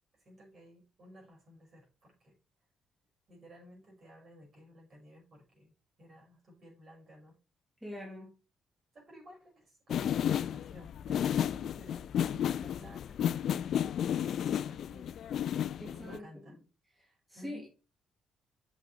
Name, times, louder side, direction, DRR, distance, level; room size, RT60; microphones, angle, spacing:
voice 1, 0.2-2.4 3.3-5.7 6.0-7.4 8.9-16.6 17.3-17.7, equal, 40° right, -1 dB, 5.9 m, -54 dB
voice 2, 7.8-8.3 15.8-16.6 17.0-17.7, left 1 dB, 5° right, -3 dB, 3.6 m, -44 dB
sound 1, 9.9-16.2, left 10 dB, 65° left, 0.4 m, -32 dB
7.4 x 6.5 x 5.0 m, 0.32 s
cardioid pair, 90°, 0 cm